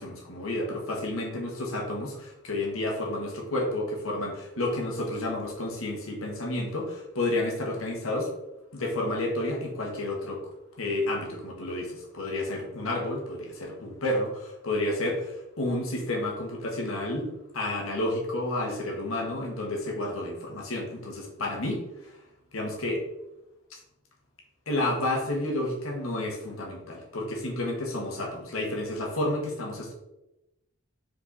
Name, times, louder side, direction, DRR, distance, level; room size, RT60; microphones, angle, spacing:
voice 1, 0.0-8.3 8.7-10.4 10.8-17.3 17.5-22.1 22.5-23.0 23.7-23.8 24.7-29.9, left 1 dB, 80° left, -1 dB, 1.6 m, -30 dB
5.0 x 4.6 x 4.2 m, 0.95 s
head